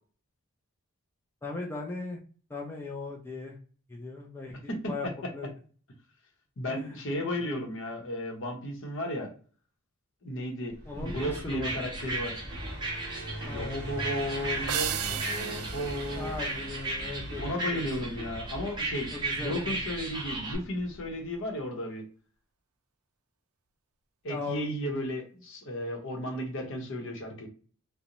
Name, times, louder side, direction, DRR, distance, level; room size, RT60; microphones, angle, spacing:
voice 1, 1.4-2.2 2.5-3.5 3.9-5.1 5.3-5.5 6.7-7.0 10.9-11.7 13.5-13.9 16.1-17.4 17.7-17.8 19.1-19.8 24.3-24.7, left 3 dB, 10° left, -1 dB, 0.3 m, -38 dB
voice 2, 6.6-9.3 10.2-12.4 13.5-16.3 17.4-19.1 19.4-22.1 24.2-27.5, equal, 60° left, 2 dB, 0.7 m, -34 dB
Car passing by, 10.7-21.3, right 1 dB, 50° right, 0.8 m, -42 dB
sound 1, 11.1-20.6, right 2 dB, 20° right, 0.7 m, -36 dB
sound 2, 14.7-17.3, right 10 dB, 75° right, 0.3 m, -35 dB
2.5 x 2.0 x 2.9 m, 0.40 s
head